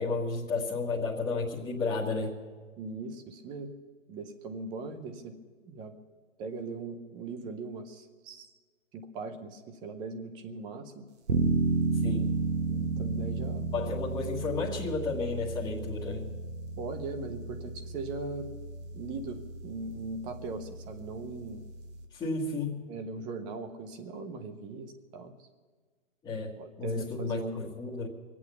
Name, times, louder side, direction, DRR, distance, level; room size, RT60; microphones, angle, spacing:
voice 1, 0.0-2.4 12.0-12.3 13.7-16.3 22.1-22.9 26.2-26.5 26.8-28.1, left 3 dB, 10° left, -8 dB, 1.6 m, -32 dB
voice 2, 2.8-3.7 4.1-5.3 5.6-5.9 6.4-8.5 8.9-11.1 12.7-13.7 16.8-18.5 18.9-21.6 22.9-25.3 26.6-27.8, right 3 dB, 10° right, 7 dB, 0.6 m, -39 dB
sound 1, 11.3-22.0, right 4 dB, 60° right, 1.6 m, -33 dB
22.5 x 8.5 x 6.9 m, 1.5 s
hypercardioid pair, 145°, 39 cm